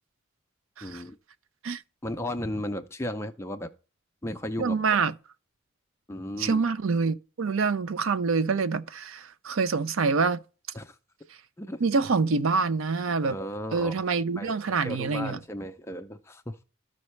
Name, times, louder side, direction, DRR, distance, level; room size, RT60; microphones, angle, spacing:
voice 1, 0.8-1.2 2.0-3.7 4.2-5.0 6.1-6.6 10.7-11.0 11.6-11.8 13.2-13.9 14.4-16.6, left 1 dB, 15° left, 0.4 m, -35 dB
voice 2, 4.6-5.1 6.4-10.4 11.8-13.4 13.7-15.4, right 4 dB, 75° right, 0.5 m, -26 dB
12.5 x 5.3 x 3.2 m
head